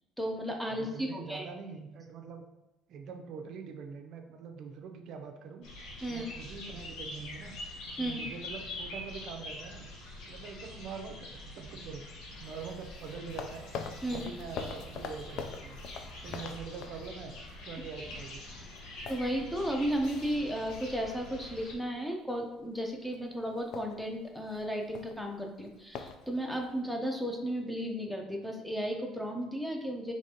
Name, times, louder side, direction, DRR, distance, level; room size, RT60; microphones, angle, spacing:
voice 1, 0.2-1.5 6.0-6.3 8.0-8.2 14.0-14.2 16.2-16.4 19.1-30.1, equal, ahead, 2 dB, 0.6 m, -34 dB
voice 2, 0.7-2.4 2.9-5.6 6.1-7.6 8.0-9.9 10.3-12.0 12.4-13.7 14.1-15.8 16.2-17.3 17.6-18.4, right 5 dB, 55° right, 4 dB, 0.5 m, -44 dB
sound 1, 5.6-21.7, left 1 dB, 75° left, 1.1 m, -45 dB
sound 2, 12.3-17.5 17.9-18.1 18.5-21.2 21.5-21.9 22.4-22.8 23.0-23.2 23.4-26.8, left 5 dB, 55° left, 0.4 m, -44 dB
5.0 x 3.3 x 2.8 m, 0.99 s
cardioid pair, 140°, 0 cm